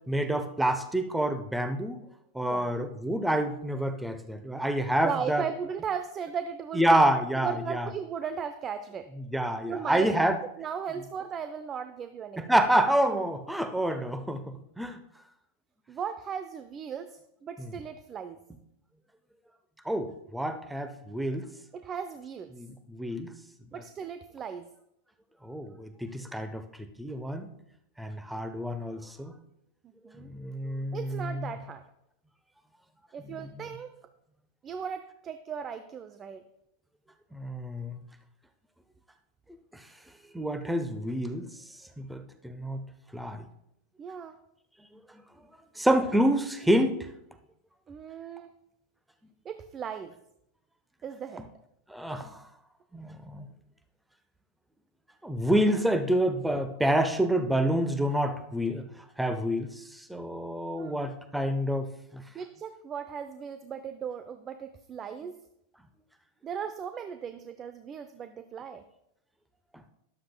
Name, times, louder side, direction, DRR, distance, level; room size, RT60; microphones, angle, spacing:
voice 1, 0.1-2.0 2.3-5.4 6.7-7.9 9.3-10.4 12.4-15.0 19.9-21.5 22.5-23.3 25.4-26.6 27.0-27.5 28.0-29.3 30.3-31.5 37.3-38.0 40.3-41.5 42.0-42.8 43.1-43.4 45.8-47.1 51.9-52.3 52.9-53.5 55.2-58.9 59.2-59.7 60.1-62.2, right 1 dB, 5° right, 9 dB, 0.9 m, -28 dB
voice 2, 2.4-2.7 5.0-7.0 7.4-9.1 9.7-10.3 10.6-12.4 15.9-18.4 21.7-22.5 23.7-24.7 30.0-30.3 30.9-31.8 33.1-33.9 34.6-36.4 44.0-44.4 47.9-48.5 49.4-50.2 51.0-51.5 60.8-61.0 62.3-65.4 66.4-68.8, right 7 dB, 25° right, 10 dB, 0.6 m, -37 dB
13.0 x 11.5 x 2.3 m, 0.79 s
figure-of-eight pair, 90°, 0 cm